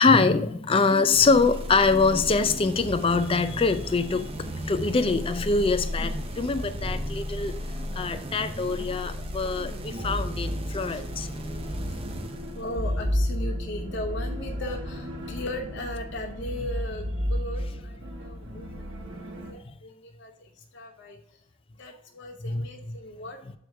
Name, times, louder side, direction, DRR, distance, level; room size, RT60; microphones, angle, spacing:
voice 1, 0.0-7.5 7.9-11.3 15.3-15.4 16.6-16.7 17.6-17.7 18.5-18.8 19.6-19.7 22.4-23.0 23.4-23.6, left 4 dB, 25° left, 10 dB, 0.4 m, -24 dB
sound 1, 1.1-13.1, equal, 25° right, 0.6 m, -35 dB
sound 2, 9.7-19.5, equal, 60° right, 1.1 m, -32 dB
voice 2, 11.3-12.0 12.5-18.7 19.2-21.2 21.8-23.6, left 1 dB, 55° left, 2 dB, 0.7 m, -38 dB
7.7 x 4.7 x 3.3 m, 0.72 s
head